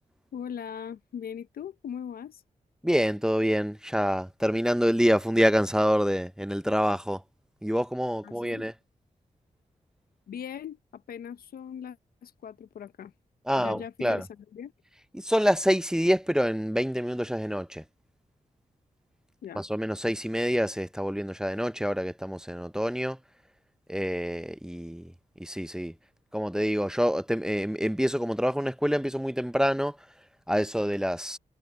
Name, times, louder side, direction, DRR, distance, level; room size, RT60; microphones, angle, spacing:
voice 1, 0.3-2.4 8.2-8.6 10.3-13.1 13.5-14.7 19.4-19.6, left 8 dB, 85° left, 0.8 m, -40 dB
voice 2, 2.8-7.2 7.6-8.7 13.5-14.2 15.1-17.8 19.6-23.2 23.9-25.1 25.4-25.9 26.3-30.0 30.5-31.4, equal, 5° right, 0.6 m, -26 dB
cardioid pair, 55°, 15 cm